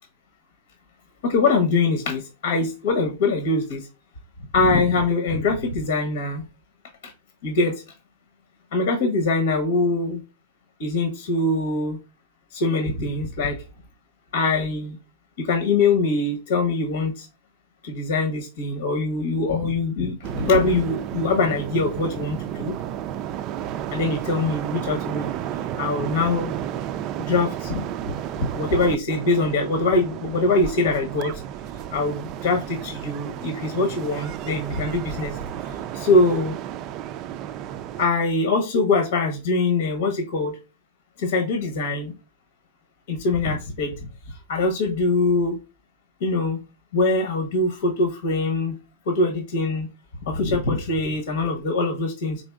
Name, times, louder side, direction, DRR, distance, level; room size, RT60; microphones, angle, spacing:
voice 1, 1.2-3.8 4.5-6.4 7.4-7.7 8.7-10.2 10.8-12.0 12.5-13.6 14.3-15.0 15.4-17.3 17.8-22.7 23.9-25.3 25.8-26.5 27.2-27.8 28.5-31.3 31.9-35.3 35.9-36.5 38.0-40.5 41.2-42.1 43.1-43.9 44.5-45.6 46.2-46.6 46.9-48.7 49.1-49.9 50.3-52.4, left 3 dB, 70° left, 5 dB, 1.0 m, -23 dB
sound 1, 20.2-38.1, right 10 dB, 40° right, 0.3 m, -32 dB
4.2 x 3.8 x 2.3 m, 0.28 s
hypercardioid pair, 135°, 0 cm